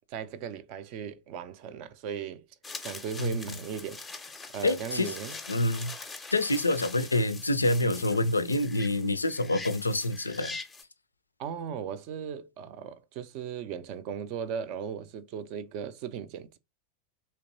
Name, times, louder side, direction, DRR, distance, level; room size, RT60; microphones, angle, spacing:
voice 1, 0.1-2.4 2.8-4.0 4.5-5.4 7.8-8.3 11.4-16.6, right 8 dB, 45° right, 0.4 m, -37 dB
sound 1, 2.6-10.8, left 3 dB, 10° left, 0.6 m, -43 dB
voice 2, 4.6-5.2 5.5-5.9 6.3-10.6, left 1 dB, 80° left, 0.3 m, -27 dB
3.3 x 2.9 x 2.5 m
figure-of-eight pair, 90°, 0 cm